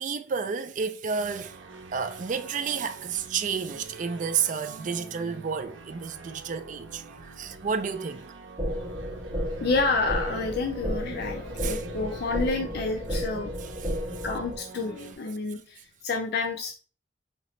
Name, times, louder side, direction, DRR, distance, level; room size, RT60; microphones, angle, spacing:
voice 1, 0.0-1.6 1.9-8.3 11.6-11.8 13.6-14.0, right 6 dB, 45° right, 0.4 m, -31 dB
sound 1, 1.2-15.2, right 3 dB, 80° right, 0.6 m, -46 dB
sound 2, 8.6-14.6, equal, 10° right, 1.4 m, -32 dB
voice 2, 9.6-13.5 14.2-16.8, left 3 dB, 60° left, 0.5 m, -29 dB
5.2 x 2.8 x 3.1 m
head